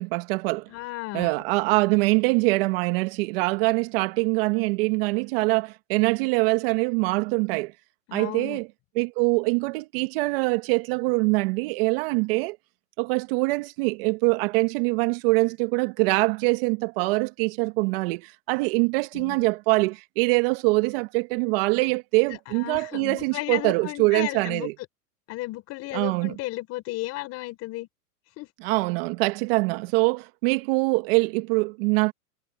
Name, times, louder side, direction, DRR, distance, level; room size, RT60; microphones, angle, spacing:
voice 1, 0.0-0.7 1.1-7.7 8.1-8.7 9.0-12.6 13.0-24.7 25.9-26.3 28.6-32.1, right 26 dB, 40° right, 1.3 m, -24 dB
voice 2, 0.7-1.4 8.1-8.6 19.1-19.4 22.3-24.7 25.3-27.9 28.4-28.5, left 19 dB, 30° left, 4.2 m, -34 dB
hypercardioid pair, 140°, 47 cm